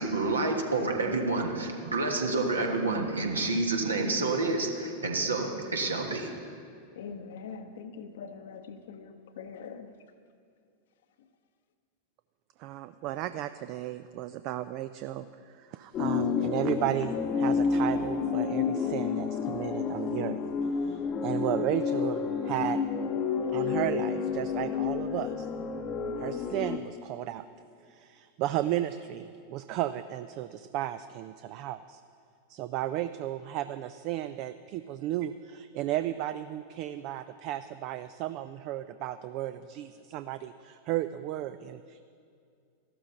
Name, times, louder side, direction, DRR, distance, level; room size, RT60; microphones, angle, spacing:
voice 1, 0.0-6.3, right 3 dB, 75° right, 2 dB, 1.4 m, -29 dB
voice 2, 6.9-9.9 11.2-11.3, left 6 dB, 60° left, 9 dB, 0.8 m, -43 dB
voice 3, 12.6-20.4 20.8-22.8 23.5-25.5 26.2-27.4 27.8-32.0 32.5-42.1, right 13 dB, 40° right, 12 dB, 0.3 m, -34 dB
sound 1, 15.9-26.8, left 6 dB, 30° left, 0.8 m, -30 dB
14.0 x 12.5 x 3.9 m, 2.3 s
figure-of-eight pair, 90°, 0 cm